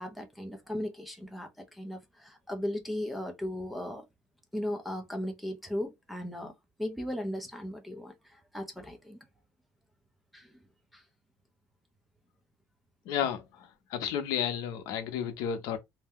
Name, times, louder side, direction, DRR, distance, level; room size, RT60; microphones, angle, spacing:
voice 1, 0.0-4.1 4.5-6.5 6.8-9.2 10.3-10.5 10.9-11.0, left 1 dB, ahead, 0.5 m, -37 dB
voice 2, 13.1-13.4 13.9-15.8, left 9 dB, 65° left, 0.7 m, -31 dB
2.7 x 2.1 x 3.5 m
cardioid pair, 165°, 7 cm